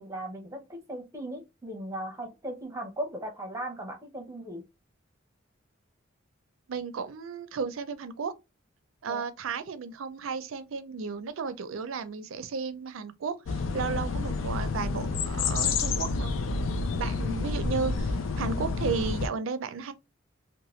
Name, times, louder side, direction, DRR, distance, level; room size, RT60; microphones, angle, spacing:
voice 1, 0.0-4.6 9.1-9.2, right 1 dB, 15° right, 0.8 m, -37 dB
voice 2, 6.7-8.3 9.0-16.3 17.0-19.9, right 5 dB, 85° right, 0.4 m, -34 dB
sound 1, 13.5-19.3, left 4 dB, 75° left, 0.4 m, -29 dB
2.8 x 2.2 x 3.0 m
head